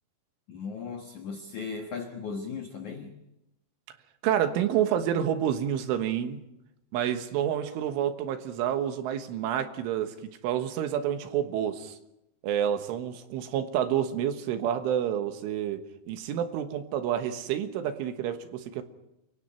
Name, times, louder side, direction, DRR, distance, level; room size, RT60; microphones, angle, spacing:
voice 1, 0.5-3.1, left 5 dB, 80° left, 4 dB, 1.7 m, -37 dB
voice 2, 4.2-6.4 6.9-10.2 10.4-12.0 12.4-18.8, right 10 dB, 75° right, 8 dB, 3.7 m, -29 dB
29.0 x 23.5 x 4.4 m, 0.86 s
omnidirectional pair, 5.8 m